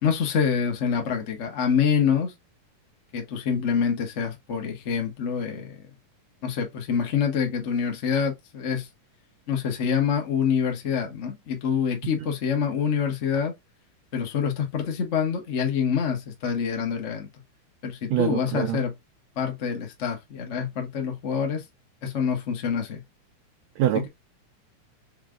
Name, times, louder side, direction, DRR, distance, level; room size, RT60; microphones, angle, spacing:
voice 1, 0.0-2.3 3.1-5.8 6.4-8.9 9.5-13.5 14.1-17.3 17.8-18.9 19.4-21.6 22.0-23.0, left 7 dB, 60° left, 0.7 m, -26 dB
voice 2, 18.1-18.8 23.8-24.1, right 12 dB, 80° right, 1.6 m, -25 dB
5.8 x 3.5 x 2.5 m
omnidirectional pair, 3.7 m